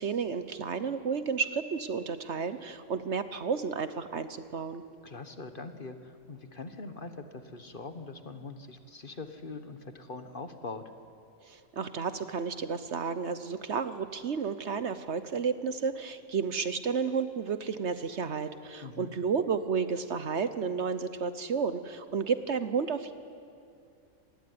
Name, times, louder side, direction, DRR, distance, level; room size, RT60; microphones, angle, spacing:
voice 1, 0.0-4.8 11.5-23.1, right 5 dB, 55° right, 12 dB, 1.1 m, -32 dB
voice 2, 5.0-10.8 18.8-19.1, left 3 dB, 40° left, 9 dB, 1.4 m, -42 dB
26.0 x 20.0 x 9.5 m, 2.5 s
omnidirectional pair, 1.5 m